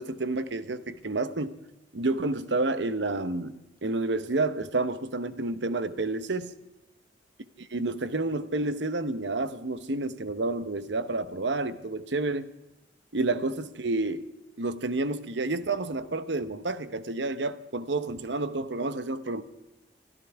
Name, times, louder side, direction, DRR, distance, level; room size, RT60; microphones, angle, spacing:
voice 1, 0.0-1.5 1.9-6.5 7.7-12.5 13.1-14.3 14.6-19.4, right 2 dB, 70° right, 0.9 m, -30 dB
25.5 x 13.5 x 3.5 m
head